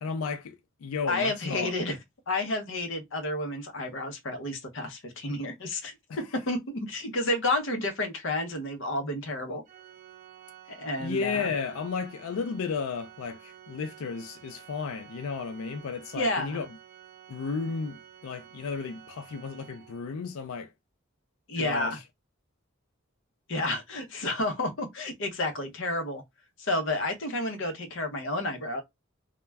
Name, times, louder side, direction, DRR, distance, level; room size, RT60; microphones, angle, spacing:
voice 1, 0.0-1.7 6.1-6.2 11.0-16.7 17.3-20.7 21.6-22.0, left 5 dB, 90° left, 0.4 m, -33 dB
voice 2, 1.1-2.0 2.3-5.9 6.3-9.6 10.7-11.5 16.2-16.6 21.5-22.0 23.5-26.2 26.6-28.8, left 2 dB, 65° left, 0.7 m, -30 dB
Organ, 9.7-20.4, right 11 dB, 40° right, 0.4 m, -51 dB
2.3 x 2.2 x 3.2 m
head